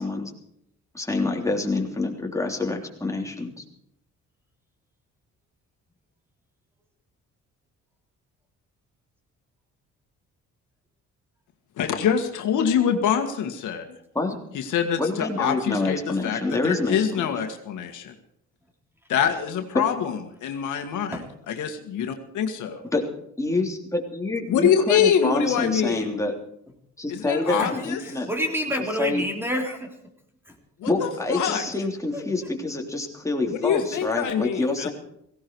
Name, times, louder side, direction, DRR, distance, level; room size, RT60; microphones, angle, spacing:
voice 1, 0.0-0.3 0.9-3.5 14.1-14.4 15.0-17.4 19.7-19.8 22.9-23.0 23.4-26.3 27.0-28.3 28.8-29.2 30.9-34.9, left 2 dB, 10° left, 1 dB, 3.4 m, -27 dB
voice 2, 11.8-13.8 14.5-16.4 16.6-18.1 19.1-22.8 24.5-26.1 27.1-28.0 30.8-31.6 33.6-34.9, left 8 dB, 80° left, 5 dB, 1.9 m, -25 dB
voice 3, 28.3-29.9 32.1-32.2, equal, 5° right, 3 dB, 3.5 m, -27 dB
17.0 x 16.5 x 4.7 m, 0.73 s
cardioid pair, 90°, 30 cm